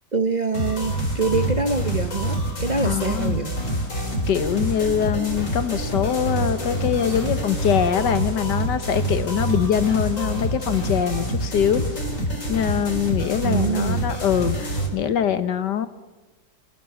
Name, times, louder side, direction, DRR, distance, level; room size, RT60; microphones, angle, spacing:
voice 1, 0.1-3.5 13.4-14.1, right 3 dB, 35° right, 9 dB, 0.8 m, -25 dB
sound 1, 0.5-14.9, right 1 dB, 50° left, 4.1 m, -26 dB
voice 2, 2.8-3.4 4.3-11.9 12.5-15.9, left 9 dB, 85° left, 12 dB, 1.8 m, -23 dB
sound 2, 3.4-8.5, right 1 dB, 75° right, 8.8 m, -42 dB
27.0 x 16.5 x 7.1 m, 1.3 s
omnidirectional pair, 1.8 m